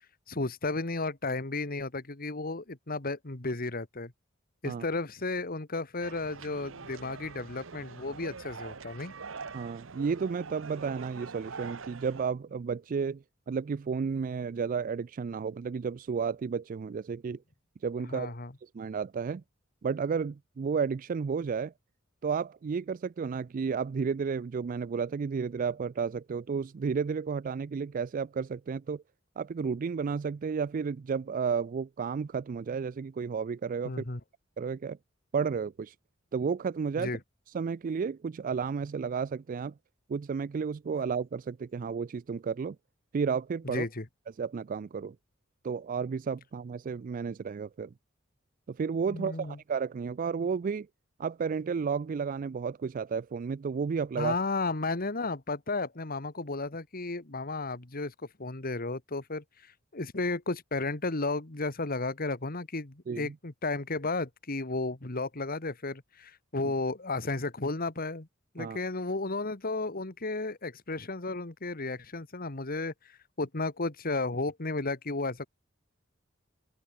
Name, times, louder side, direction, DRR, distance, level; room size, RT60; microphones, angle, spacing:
voice 1, 0.3-4.1 4.6-9.1 18.1-18.5 33.8-34.2 37.0-37.2 43.6-44.1 49.1-49.6 54.2-58.1 58.4-59.4 59.9-68.3 68.5-75.5, left 3 dB, 45° left, 1.8 m, -33 dB
sound 1, 6.0-12.2, right 5 dB, 75° right, 1.1 m, -44 dB
voice 2, 9.5-17.4 17.8-18.3 18.6-19.4 19.8-21.7 22.2-29.0 29.4-34.0 34.6-35.0 35.3-36.0 36.3-37.1 37.5-39.7 40.1-42.8 43.1-43.9 44.4-45.2 45.6-47.9 48.7-50.9 51.2-54.4 63.1-63.3 66.6-66.7 68.6-68.8, right 5 dB, 45° right, 0.3 m, -32 dB
open air
head